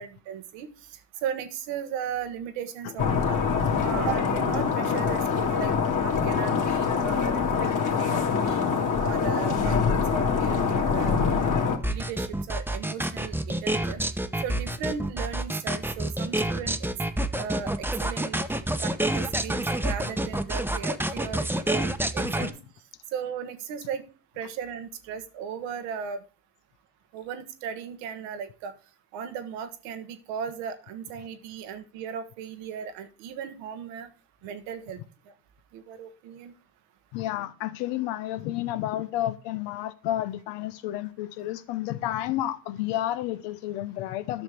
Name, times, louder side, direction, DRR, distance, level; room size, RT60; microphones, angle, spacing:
voice 1, 0.0-3.4 3.8-8.6 9.0-11.2 11.9-14.0 14.4-16.9 17.4-18.4 18.8-22.6 23.1-24.0 24.4-26.2 27.1-28.7 29.1-34.1 34.4-35.3 35.7-36.5, right 7 dB, 85° right, 1.2 m, -36 dB
sound 1, 3.0-11.8, left 5 dB, 45° left, 2.1 m, -24 dB
sound 2, 11.8-22.5, right 1 dB, 5° right, 0.8 m, -28 dB
voice 2, 37.1-44.4, left 13 dB, 85° left, 0.8 m, -31 dB
10.5 x 6.2 x 3.4 m
supercardioid pair, 65°, 42 cm